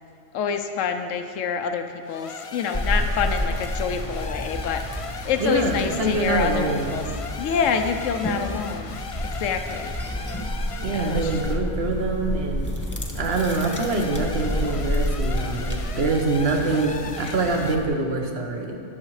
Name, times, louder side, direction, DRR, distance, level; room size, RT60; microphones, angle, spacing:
voice 1, 0.3-4.8 5.2-7.1 7.4-9.0 9.4-9.9 10.9-11.3 17.2-17.4, left 6 dB, 85° left, 7 dB, 1.0 m, -27 dB
sound 1, 2.0-11.7 13.1-17.8, left 4 dB, 50° left, 0.4 m, -38 dB
sound 2, 2.7-17.9, equal, 15° left, 1.0 m, -30 dB
voice 2, 5.4-7.0 10.8-12.8 13.1-18.8, right 3 dB, 55° right, 2 dB, 1.3 m, -25 dB
20.5 x 7.4 x 3.2 m, 2.4 s
omnidirectional pair, 1.3 m